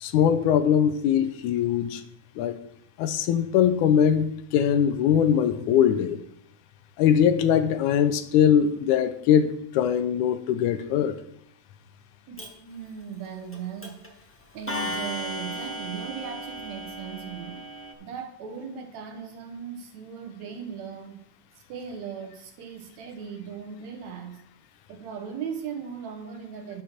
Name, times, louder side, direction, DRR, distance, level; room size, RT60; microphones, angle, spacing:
voice 1, 0.0-2.0 2.4-2.6 3.0-6.2 7.0-11.2, left 9 dB, 80° left, 2.1 m, -21 dB
voice 2, 12.3-14.0 14.5-17.7 18.0-21.2 21.7-24.4 24.9-26.8, right 7 dB, 70° right, 2.1 m, -38 dB
Clock, 12.4-12.5 13.5-13.6 13.8-14.1 14.7-17.9, equal, 10° left, 0.5 m, -35 dB
10.5 x 6.6 x 5.8 m
omnidirectional pair, 3.6 m